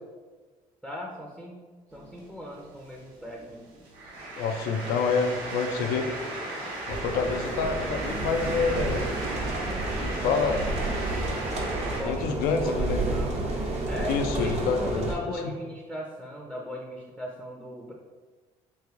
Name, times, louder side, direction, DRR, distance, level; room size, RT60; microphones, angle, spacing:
voice 1, 0.8-1.6 1.9-3.7 12.0-13.4 13.8-17.9, left 1 dB, 5° right, -2 dB, 0.6 m, -38 dB
sound 1, 1.9-12.0, right 2 dB, 75° right, 1.0 m, -36 dB
voice 2, 4.4-6.1 6.9-9.1 10.0-10.6 12.0-13.0 14.1-15.1, left 5 dB, 75° left, 6 dB, 0.4 m, -27 dB
sound 2, 6.9-15.1, right 2 dB, 45° right, 0.8 m, -31 dB
3.2 x 2.5 x 3.6 m, 1.4 s
supercardioid pair, 70°, 16 cm